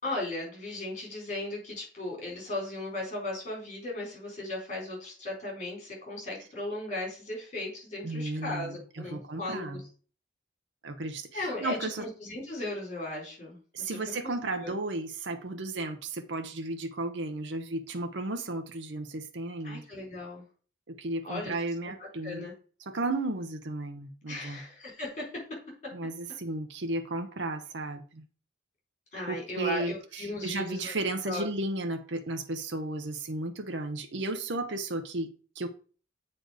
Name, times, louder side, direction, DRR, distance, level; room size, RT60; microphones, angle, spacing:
voice 1, 0.0-9.8 11.3-14.7 19.6-20.4 21.2-21.5 22.0-22.5 24.3-25.9 29.1-30.9 31.2-31.4, left 2 dB, 40° left, 4.1 m, -37 dB
voice 2, 8.0-9.8 10.8-12.0 13.7-19.8 20.9-22.5 22.8-24.6 25.9-28.2 29.3-35.7, right 2 dB, 80° right, 0.9 m, -34 dB
8.0 x 4.3 x 5.0 m
head